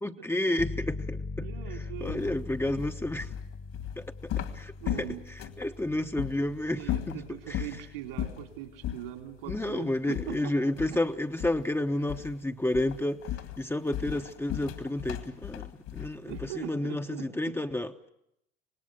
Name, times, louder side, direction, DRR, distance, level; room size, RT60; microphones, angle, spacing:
voice 1, 0.0-3.3 4.0-4.7 5.0-7.2 7.5-7.6 9.5-13.2 13.6-18.1, left 1 dB, 10° left, 6 dB, 1.0 m, -31 dB
sound 1, 0.6-11.1, left 3 dB, 25° left, 1.2 m, -42 dB
voice 2, 1.4-2.3 4.8-5.2 6.7-10.5 10.9-11.0 16.3-17.6, right 12 dB, 70° right, 5 dB, 3.6 m, -41 dB
sound 2, 2.1-5.7 6.2-6.4 6.8-7.8 8.2-8.5 8.8-9.1 9.5-9.7 10.1-11.1 11.4-11.7 12.1-12.4 12.7-16.7, left 12 dB, 55° left, 2.2 m, -36 dB
26.0 x 19.0 x 7.8 m, 0.78 s
hypercardioid pair, 65°, 30 cm